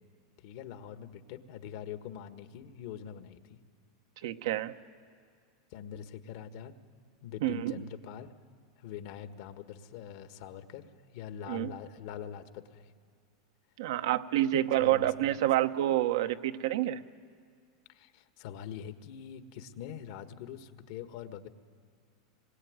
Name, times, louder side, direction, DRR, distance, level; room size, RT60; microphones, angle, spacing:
voice 1, 0.4-3.6 5.7-6.7 7.2-8.4 8.8-12.9 14.5-15.4 17.9-21.5, left 9 dB, 60° left, 9 dB, 1.6 m, -44 dB
voice 2, 4.2-4.7 7.4-7.7 11.5-11.7 13.8-17.0, right 13 dB, 75° right, 9 dB, 1.0 m, -28 dB
25.5 x 21.5 x 9.6 m, 2.1 s
supercardioid pair, 125°, 2 cm